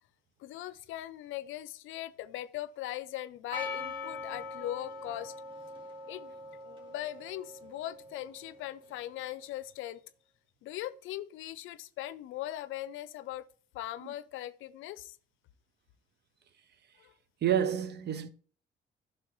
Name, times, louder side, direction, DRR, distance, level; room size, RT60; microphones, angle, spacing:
voice 1, 0.4-5.3 6.1-6.3 6.6-10.0 10.6-13.5 13.7-15.2 17.0-17.1, left 14 dB, 90° left, 0.5 m, -40 dB
Percussion, 3.5-8.5, left 3 dB, 25° right, 2.4 m, -42 dB
voice 2, 17.4-18.3, right 9 dB, 60° right, 0.7 m, -28 dB
10.0 x 6.1 x 3.0 m
cardioid pair, 90°, 20 cm